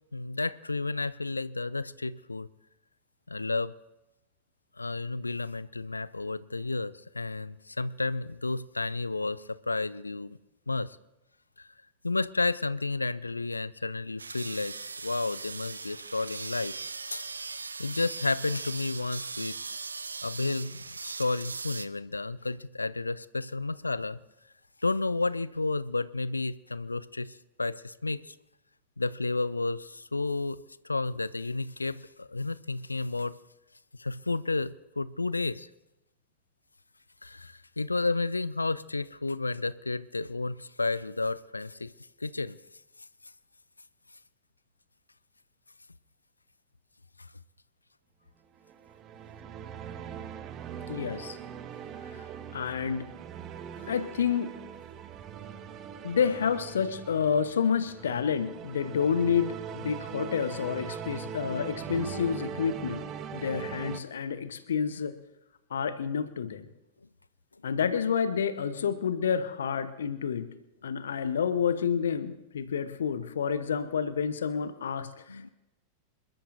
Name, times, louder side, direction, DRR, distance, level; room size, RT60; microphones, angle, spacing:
voice 1, 0.1-2.5 3.3-3.7 4.8-10.4 10.7-11.0 11.6-11.7 12.0-14.7 15.0-16.7 17.1-17.3 17.8-19.5 20.2-24.2 24.8-28.4 29.0-33.4 34.0-35.7 37.2-41.9 42.2-42.6 75.3-75.5, left 3 dB, 80° left, 19 dB, 0.4 m, -31 dB
sound 1, 14.2-21.9, right 4 dB, 75° right, 0.5 m, -39 dB
sound 2, 48.6-64.0, right 8 dB, 30° right, 0.8 m, -41 dB
voice 2, 50.9-51.4 52.2-52.3 52.5-53.1 53.9-54.6 56.0-65.1 65.7-66.7 67.6-70.5 70.8-75.5, left 7 dB, 65° left, 12 dB, 0.9 m, -29 dB
27.0 x 13.0 x 2.6 m, 0.96 s
figure-of-eight pair, 90°, 0 cm